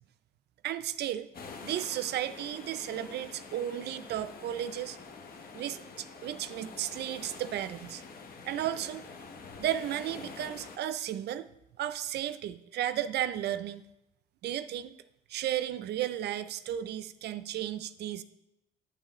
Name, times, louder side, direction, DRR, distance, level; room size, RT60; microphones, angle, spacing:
voice 1, 0.6-1.3 1.6-5.0 5.5-8.0 8.4-9.0 9.6-11.5 11.8-13.8 14.4-15.0 15.3-18.2, right 11 dB, 60° right, 13 dB, 0.4 m, -34 dB
sound 1, 1.3-10.8, left 4 dB, 50° left, 1.1 m, -47 dB
8.4 x 8.0 x 3.0 m, 0.88 s
supercardioid pair, 65°, 19 cm